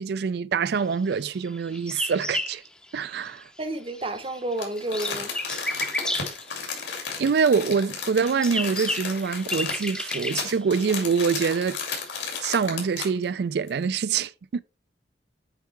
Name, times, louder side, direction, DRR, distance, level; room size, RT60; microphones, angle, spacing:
voice 1, 0.0-2.6 2.9-3.5 7.2-11.8 12.4-14.6, right 5 dB, 65° right, 0.4 m, -25 dB
sound 1, 1.4-3.6 3.9-7.4 8.0-12.3, left 1 dB, 5° left, 0.6 m, -33 dB
voice 2, 3.6-5.3, right 2 dB, 30° right, 0.8 m, -30 dB
Crumpling crinkling, 4.6-13.2 13.7-13.8, left 5 dB, 85° left, 2.5 m, -34 dB
8.1 x 4.6 x 3.2 m
head